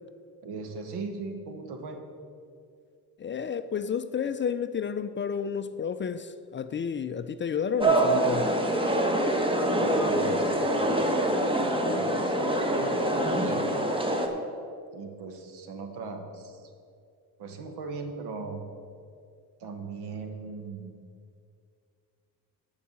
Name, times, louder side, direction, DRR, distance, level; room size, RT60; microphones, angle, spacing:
voice 1, 0.4-2.0 9.7-13.7 14.9-16.7 17.4-18.7 19.6-20.9, right 4 dB, 80° right, 1.4 m, -38 dB
voice 2, 3.2-8.5, left 7 dB, 30° left, 0.4 m, -31 dB
sound 1, 7.8-14.3, right 1 dB, 15° right, 1.1 m, -25 dB
12.5 x 4.8 x 7.1 m
cardioid pair, 90°, 40 cm